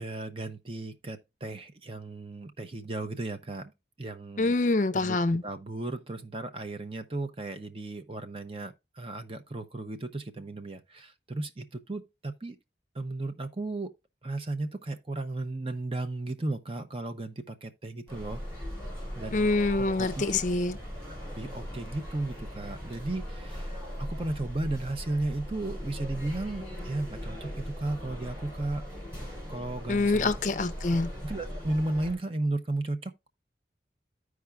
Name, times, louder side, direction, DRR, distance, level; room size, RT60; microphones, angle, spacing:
voice 1, 0.0-3.7 4.0-4.5 4.9-5.2 5.4-12.6 12.9-13.9 14.2-18.4 19.1-19.5 19.7-20.4 21.1-28.8 29.5-30.3 31.2-33.1, right 2 dB, 30° right, 0.7 m, -35 dB
voice 2, 4.4-5.4 19.3-20.7 29.9-31.1, left 3 dB, 45° left, 0.5 m, -25 dB
sound 1, 18.1-32.1, equal, 15° right, 5.6 m, -39 dB
14.5 x 4.8 x 2.2 m
head